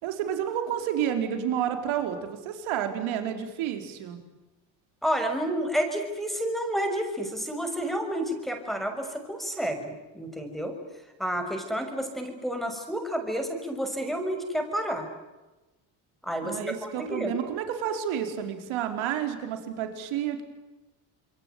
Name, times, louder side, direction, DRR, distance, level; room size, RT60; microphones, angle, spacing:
voice 1, 0.0-4.2 16.4-20.4, right 9 dB, 70° right, 6 dB, 4.9 m, -30 dB
voice 2, 5.0-10.8 11.2-15.1 16.2-17.3, equal, ahead, 4 dB, 6.6 m, -30 dB
27.5 x 23.0 x 9.4 m, 1.1 s
supercardioid pair, 75°, 50 cm